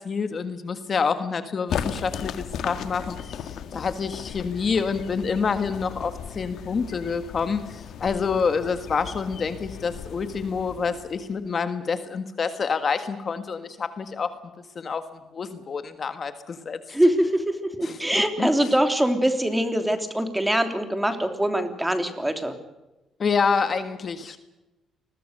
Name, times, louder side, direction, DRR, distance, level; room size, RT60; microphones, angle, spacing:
voice 1, 0.0-14.3 14.7-15.0 15.3-17.0 17.8-18.0 18.4-18.5 23.2-24.4, left 5 dB, 40° left, 9 dB, 1.6 m, -27 dB
sound 1, 1.7-11.5, left 8 dB, 70° left, 1.9 m, -36 dB
voice 2, 16.9-22.5, right 1 dB, 5° right, 7 dB, 3.1 m, -23 dB
29.0 x 21.0 x 6.7 m, 1.0 s
cardioid pair, 125°, 0 cm